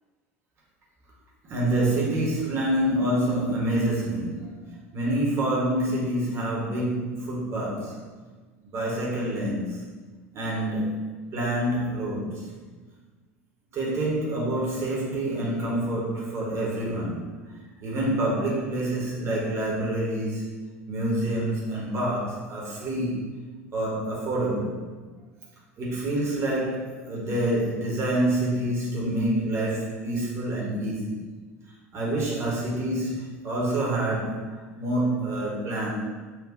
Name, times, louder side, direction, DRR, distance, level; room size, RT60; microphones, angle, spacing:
voice 1, 1.4-8.0 8.7-9.8 10.3-12.5 13.7-17.4 17.8-23.3 23.7-24.8 25.8-31.2 31.9-35.9, right 1 dB, 35° right, -5 dB, 1.1 m, -27 dB
5.8 x 2.5 x 2.5 m, 1.4 s
figure-of-eight pair, 70°, 8 cm